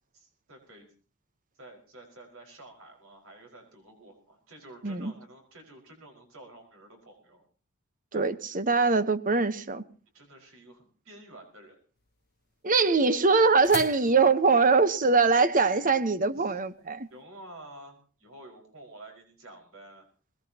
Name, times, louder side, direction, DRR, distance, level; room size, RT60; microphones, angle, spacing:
voice 1, 0.1-0.9 1.6-7.4 8.1-8.3 10.1-11.8 16.4-16.6 17.1-20.1, right 1 dB, 70° right, 2 dB, 5.3 m, -50 dB
voice 2, 8.1-9.8 12.6-17.1, right 4 dB, 40° right, 12 dB, 1.1 m, -23 dB
sound 1, 12.0-17.2, left 8 dB, 45° left, 1.0 m, -45 dB
22.5 x 19.5 x 2.9 m, 0.38 s
head